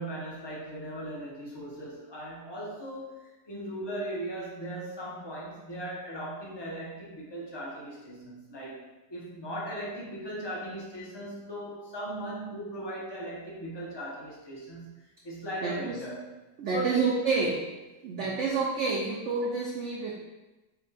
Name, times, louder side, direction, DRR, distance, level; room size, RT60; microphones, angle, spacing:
voice 1, 0.0-3.2 3.5-8.8 9.1-16.2 16.7-17.2 18.2-18.3, right 1 dB, 35° left, -5 dB, 0.4 m, -38 dB
voice 2, 15.6-16.0 16.6-17.6 18.0-20.1, right 4 dB, 75° right, -3 dB, 0.6 m, -28 dB
4.3 x 2.2 x 4.0 m, 1.1 s
omnidirectional pair, 1.8 m